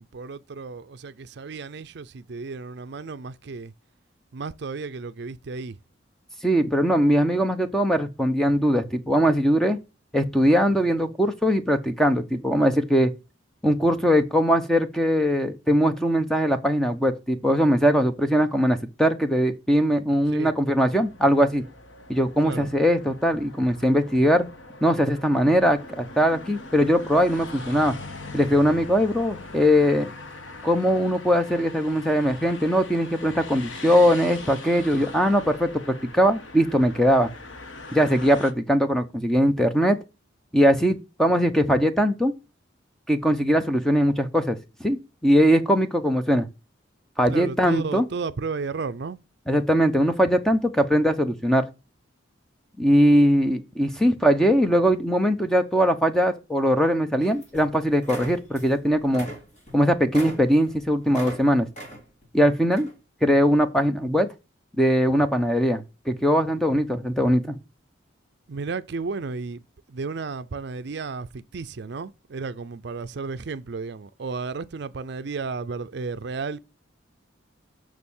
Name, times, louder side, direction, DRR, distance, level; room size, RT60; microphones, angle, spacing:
voice 1, 0.0-3.7 4.3-5.7 20.3-20.5 22.4-22.7 47.3-49.2 68.5-69.6 69.9-76.6, right 4 dB, 60° right, 0.5 m, -33 dB
voice 2, 6.4-9.8 10.1-13.1 13.6-21.6 22.1-24.5 24.8-27.9 28.3-30.1 30.6-37.3 37.9-40.0 40.5-42.3 43.1-44.6 44.8-46.5 47.2-48.1 49.5-51.7 52.8-59.3 59.7-61.7 62.3-62.9 63.2-64.3 64.8-67.6, equal, 5° left, 0.7 m, -21 dB
sound 1, 20.9-38.5, left 2 dB, 75° left, 1.1 m, -41 dB
sound 2, 57.2-57.7 58.0-58.8 59.0-61.4 61.7-62.3 62.7-62.9, right 1 dB, 40° left, 3.5 m, -39 dB
6.6 x 6.1 x 7.1 m
head